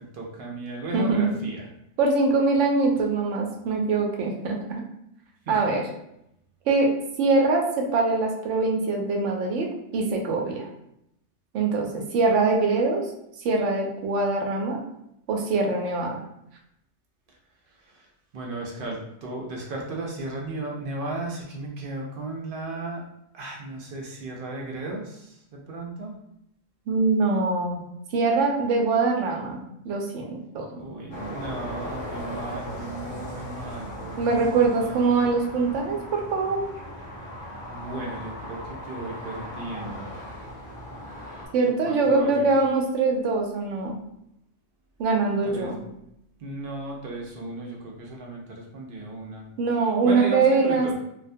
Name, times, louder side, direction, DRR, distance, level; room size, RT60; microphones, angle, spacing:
voice 1, 0.1-1.7 5.5-5.7 17.9-18.1 18.3-23.0 23.3-26.2 30.7-35.3 37.6-40.1 41.7-42.5 45.4-45.8 46.4-49.5 50.0-50.9, right 2 dB, 60° right, -1 dB, 0.6 m, -35 dB
voice 2, 0.9-1.4 2.0-4.8 5.5-5.9 6.7-6.9 7.2-10.7 11.5-13.1 13.4-14.8 15.3-16.2 26.9-27.8 28.1-30.7 34.2-36.6 41.5-43.9 45.0-45.8 49.6-50.9, right 3 dB, 90° right, 1 dB, 0.9 m, -23 dB
sound 1, 31.1-41.5, equal, 30° left, 0.6 m, -38 dB
2.4 x 2.2 x 2.6 m, 0.79 s
omnidirectional pair, 1.2 m